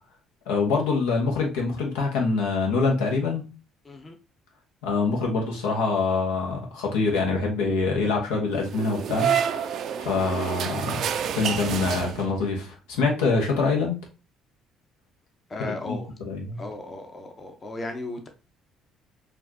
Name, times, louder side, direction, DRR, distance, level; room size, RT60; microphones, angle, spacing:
voice 1, 0.5-3.4 4.8-9.3 9.6-11.1 11.3-14.0 15.8-16.6, left 4 dB, 85° left, 1.0 m, -25 dB
voice 2, 3.8-4.2 15.5-16.1 16.6-18.3, left 2 dB, 35° left, 0.8 m, -35 dB
sound 1, 8.6-12.5, right 8 dB, 60° right, 0.4 m, -28 dB
4.4 x 2.5 x 2.8 m
supercardioid pair, 65°, 0 cm